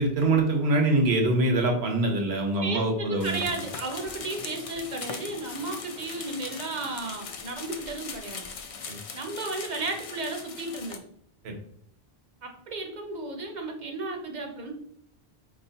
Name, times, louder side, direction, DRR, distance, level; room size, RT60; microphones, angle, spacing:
voice 1, 0.0-3.4 8.9-9.0 11.4-11.6, right 2 dB, 80° right, 2 dB, 1.2 m, -24 dB
voice 2, 2.6-8.4 9.1-11.0 12.4-14.7, right 2 dB, 50° right, 3 dB, 0.8 m, -34 dB
sound 1, 3.2-11.0, left 5 dB, 60° left, 0.3 m, -40 dB
4.4 x 2.9 x 2.8 m, 0.67 s
omnidirectional pair, 1.1 m